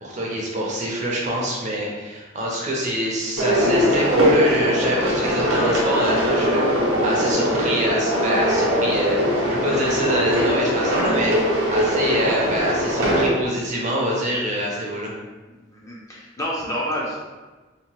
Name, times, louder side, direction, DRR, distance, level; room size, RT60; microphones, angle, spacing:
voice 1, 0.0-15.1, equal, 35° right, -3 dB, 0.5 m, -26 dB
sound 1, 3.4-13.3, equal, 80° right, 0.7 m, -21 dB
voice 2, 15.5-17.2, equal, 15° left, -5 dB, 0.4 m, -29 dB
2.8 x 2.1 x 2.9 m, 1.2 s
head